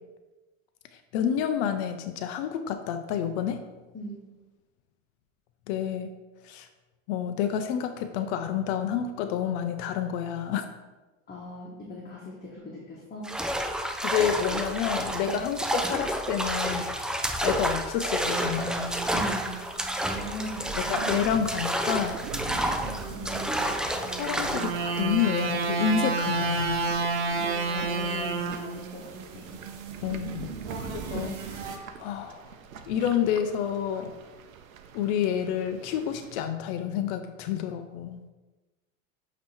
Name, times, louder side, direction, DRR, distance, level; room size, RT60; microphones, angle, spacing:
voice 1, 1.1-3.6 5.7-6.1 6.4-6.7 7.1-10.6 14.0-16.9 17.4-18.9 20.8-22.2 24.1-26.8 30.0-30.5 30.8-31.6 32.0-32.4 32.9-34.1 34.9-38.2, left 8 dB, 60° left, 8 dB, 0.7 m, -29 dB
voice 2, 3.9-4.2 11.3-13.4 15.3-15.4 19.1-19.6 20.0-20.7 23.1-23.7 27.3-29.6 30.6-30.8, equal, 25° left, -4 dB, 1.4 m, -40 dB
sound 1, 13.2-24.8, right 1 dB, ahead, 0.4 m, -30 dB
sound 2, 18.2-21.6 22.2-31.8, right 4 dB, 50° right, 1.1 m, -32 dB
sound 3, 21.6-36.5, right 7 dB, 85° right, 0.7 m, -46 dB
8.4 x 3.1 x 4.5 m, 1.2 s
hypercardioid pair, 90°, 40 cm